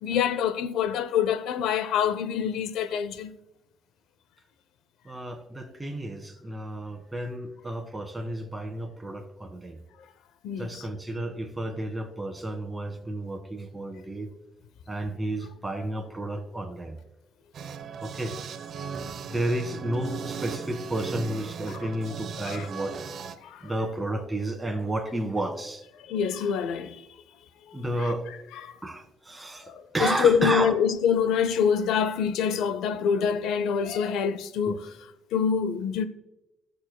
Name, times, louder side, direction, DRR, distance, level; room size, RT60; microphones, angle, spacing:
voice 1, 0.0-3.3 10.4-10.9 22.4-22.7 23.4-23.7 26.0-27.0 27.7-28.1 28.6-28.8 29.6-36.0, left 7 dB, 90° left, 0.6 m, -26 dB
voice 2, 5.0-9.8 10.6-14.3 14.9-17.0 18.0-18.4 19.3-23.0 23.6-25.8 27.7-28.2 28.8-30.7 34.6-34.7, right 1 dB, 10° right, 1.7 m, -32 dB
sound 1, 17.5-23.4, right 6 dB, 65° right, 0.8 m, -38 dB
18.0 x 6.7 x 2.2 m
cardioid pair, 90°, 0 cm